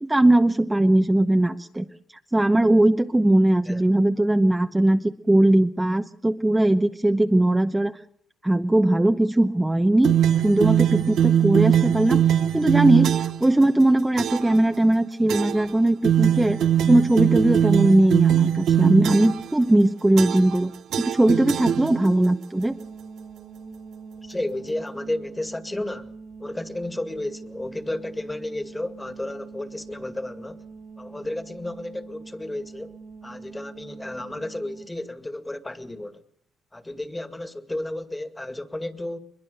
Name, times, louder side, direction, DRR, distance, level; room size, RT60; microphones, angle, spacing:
voice 1, 0.0-1.9 2.3-8.0 8.4-10.2 10.4-12.2 12.5-16.6 16.9-20.7 21.0-22.8, right 1 dB, 10° right, 0.9 m, -19 dB
sound 1, 10.0-13.5 14.2-14.6 15.3-15.7 16.0-19.5 20.2-20.6 20.9-22.3, right 10 dB, 75° right, 1.0 m, -21 dB
sound 2, 22.5-34.9, right 4 dB, 55° right, 2.8 m, -43 dB
voice 2, 24.2-26.1 26.4-30.6 31.0-33.0 33.2-36.2 36.7-39.2, left 1 dB, 15° left, 2.1 m, -32 dB
22.5 x 22.0 x 6.7 m
cardioid pair, 90°, 0 cm